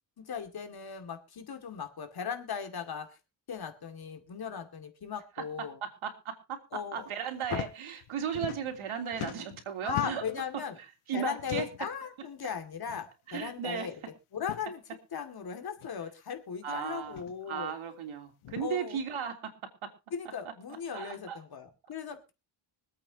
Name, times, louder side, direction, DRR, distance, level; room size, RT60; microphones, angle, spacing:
voice 1, 0.2-3.2 3.5-5.8 6.7-7.1 7.5-7.6 9.8-10.8 11.1-13.9 14.3-14.8 15.1-17.7 18.6-19.0 20.1-22.3, left 7 dB, 50° left, 7 dB, 2.4 m, -37 dB
voice 2, 5.4-10.2 11.1-11.7 13.3-13.9 16.6-19.5 19.8-19.9 20.9-21.4, right 7 dB, 75° right, 5 dB, 3.3 m, -36 dB
sound 1, 7.4-7.7 8.0-8.9 9.1-10.4 11.4-11.9 12.9-13.0 13.4-13.5 14.3-14.6 15.8-15.9 17.0-17.3 18.4-18.7, left 13 dB, 80° left, 1.2 m, -40 dB
25.0 x 8.6 x 2.9 m, 0.29 s
cardioid pair, 110°, 49 cm